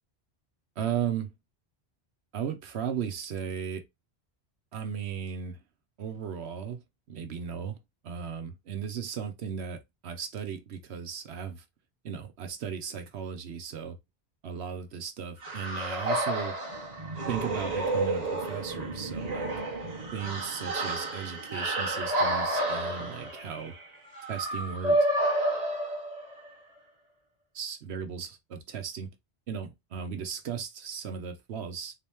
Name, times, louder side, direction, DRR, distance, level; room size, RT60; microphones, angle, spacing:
voice 1, 0.8-1.3 2.3-3.8 4.7-5.6 6.0-6.8 7.1-7.8 8.0-11.6 12.0-13.9 14.4-16.5 17.3-19.5 20.1-23.7 24.3-25.0 27.5-29.1 29.5-31.9, right 7 dB, 80° right, 1.0 m, -36 dB
sound 1, 15.4-26.5, right 1 dB, 40° right, 1.1 m, -30 dB
3.8 x 2.9 x 3.4 m
omnidirectional pair, 1.1 m